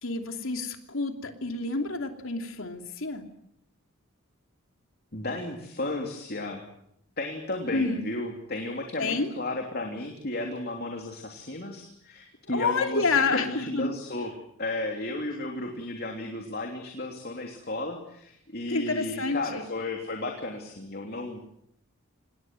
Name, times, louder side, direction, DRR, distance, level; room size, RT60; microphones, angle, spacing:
voice 1, 0.0-3.3 7.7-8.0 9.0-9.3 12.5-13.9 18.7-19.7, left 3 dB, 65° left, 5 dB, 2.9 m, -28 dB
voice 2, 5.1-6.6 7.2-14.3 14.6-21.4, left 2 dB, 45° left, 2 dB, 3.2 m, -34 dB
26.5 x 20.5 x 7.8 m, 0.74 s
head